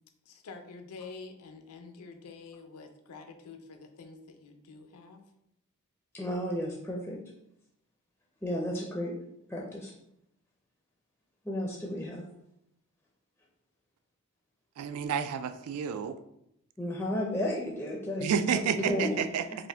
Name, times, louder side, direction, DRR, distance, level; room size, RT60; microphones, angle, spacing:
voice 1, 0.3-5.2, left 4 dB, 80° left, 6 dB, 0.5 m, -47 dB
voice 2, 6.1-7.2 8.4-9.1 9.5-9.9 11.4-12.2 16.8-19.6, left 1 dB, 10° left, -2 dB, 0.4 m, -33 dB
voice 3, 14.8-16.2 18.2-19.4, right 7 dB, 80° right, 9 dB, 0.3 m, -30 dB
5.0 x 2.1 x 3.3 m, 0.79 s
head